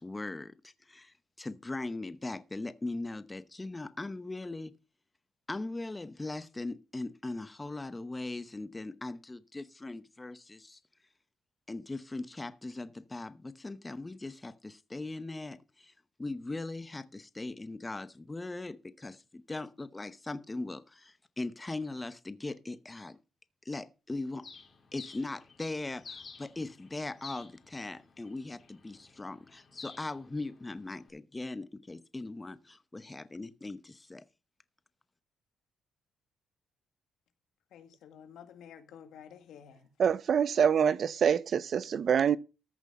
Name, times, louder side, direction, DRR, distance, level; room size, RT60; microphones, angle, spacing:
voice 1, 0.0-4.7 5.5-10.8 11.7-15.9 16.2-23.2 23.6-24.5 24.9-34.2, left 2 dB, 20° left, 0.8 m, -40 dB
Bird, 24.4-31.1, left 5 dB, 40° left, 3.0 m, -52 dB
voice 2, 37.7-39.9, left 8 dB, 80° left, 1.8 m, -51 dB
voice 3, 40.0-42.4, right 7 dB, 55° right, 0.5 m, -25 dB
14.0 x 6.1 x 5.4 m
cardioid pair, 90°, 0 cm